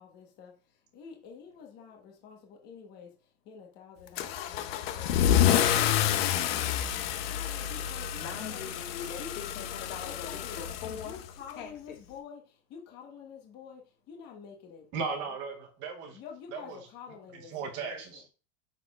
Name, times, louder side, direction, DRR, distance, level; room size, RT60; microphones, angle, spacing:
voice 1, 0.0-3.1 3.4-6.7 7.2-8.7 9.2-9.3 10.0-15.3 16.1-18.2, left 6 dB, 25° left, 1.2 m, -48 dB
Car / Engine starting / Accelerating revving vroom, 4.2-11.5, left 10 dB, 55° left, 0.8 m, -28 dB
voice 2, 8.2-11.2 11.6-12.0, left 7 dB, 80° left, 2.3 m, -42 dB
voice 3, 14.9-16.2 16.5-16.9 17.3-18.3, right 5 dB, 30° right, 0.9 m, -37 dB
7.2 x 6.2 x 2.4 m
supercardioid pair, 175°, 36 cm